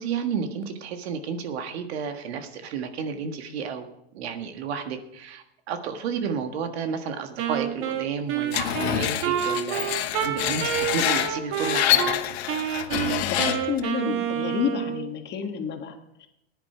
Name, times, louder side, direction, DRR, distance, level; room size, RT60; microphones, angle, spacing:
voice 1, 0.0-3.9 4.1-9.9 10.2-12.2, right 6 dB, 85° right, 7 dB, 1.7 m, -32 dB
Wind instrument woodwind instrument, 7.4-12.2 12.5-15.1, right 9 dB, 45° right, 1.5 m, -28 dB
Screech, 8.5-13.8, left 12 dB, 80° left, 1.2 m, -26 dB
voice 2, 12.9-16.3, left 8 dB, 35° left, 5 dB, 1.7 m, -30 dB
15.0 x 10.5 x 4.9 m, 0.83 s
supercardioid pair, 130°, 31 cm